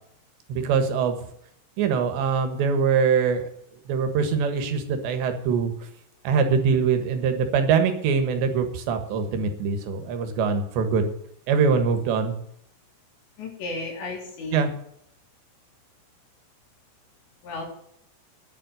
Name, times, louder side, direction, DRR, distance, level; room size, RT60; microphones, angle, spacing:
voice 1, 0.5-1.2 1.8-3.4 3.9-5.7 6.3-11.1 11.5-12.3 14.5-14.7, right 6 dB, 80° right, 7 dB, 3.8 m, -23 dB
voice 2, 13.4-14.6 17.4-17.6, left 3 dB, 80° left, 0 dB, 6.0 m, -33 dB
10.5 x 7.7 x 9.1 m, 0.71 s
omnidirectional pair, 5.0 m